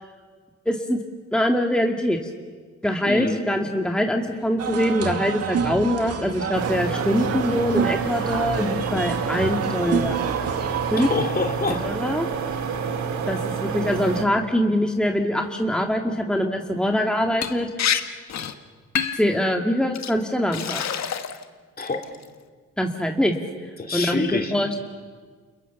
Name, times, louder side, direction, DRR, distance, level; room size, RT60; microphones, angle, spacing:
voice 1, 0.7-1.0 1.3-2.2 2.8-10.2 10.9-11.1 11.8-12.3 13.3-17.7 19.1-20.8 22.8-23.3 23.9-24.8, equal, 5° left, 3 dB, 2.1 m, -23 dB
voice 2, 3.0-3.4 11.0-11.8 21.8-22.1 23.8-24.5, left 3 dB, 30° left, 4 dB, 3.2 m, -26 dB
sound 1, 4.6-11.2, right 6 dB, 55° right, 2.5 m, -28 dB
sound 2, 6.5-14.2, right 5 dB, 70° right, 2.8 m, -28 dB
Liquid, 17.4-17.5 17.8-18.0 18.3-18.5 19.0-19.3 19.9-20.1 20.5-21.4 21.8-22.2, left 8 dB, 60° left, 1.7 m, -26 dB
30.0 x 28.5 x 7.0 m, 1.5 s
cardioid pair, 90°, 30 cm